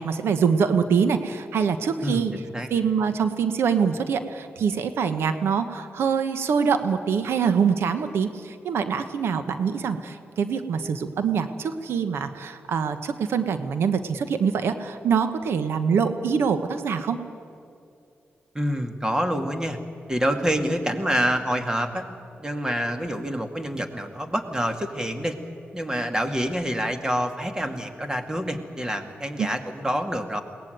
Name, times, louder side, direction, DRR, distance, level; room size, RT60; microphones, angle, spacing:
voice 1, 0.0-2.3 2.7-17.2 29.4-29.5, right 6 dB, 85° right, 10 dB, 1.2 m, -24 dB
voice 2, 2.0-2.7 18.5-19.8 20.1-22.0 22.4-25.4 25.7-30.4, equal, 15° right, 6 dB, 2.4 m, -27 dB
22.0 x 19.0 x 9.4 m, 2.5 s
cardioid pair, 70°, 4 cm